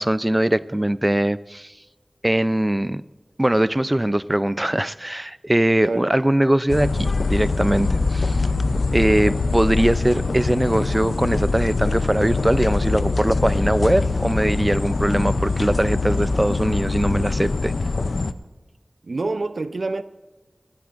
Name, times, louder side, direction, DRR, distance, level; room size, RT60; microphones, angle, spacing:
voice 1, 0.0-1.7 2.2-3.0 3.4-8.4 8.9-17.7, right 1 dB, 20° right, 15 dB, 0.4 m, -21 dB
sound 1, 6.7-18.3, left 3 dB, 85° left, 0.5 m, -23 dB
voice 2, 19.0-20.0, right 3 dB, 80° right, 12 dB, 0.5 m, -26 dB
20.0 x 13.0 x 2.5 m, 1.2 s
wide cardioid pair, 65°, 0 cm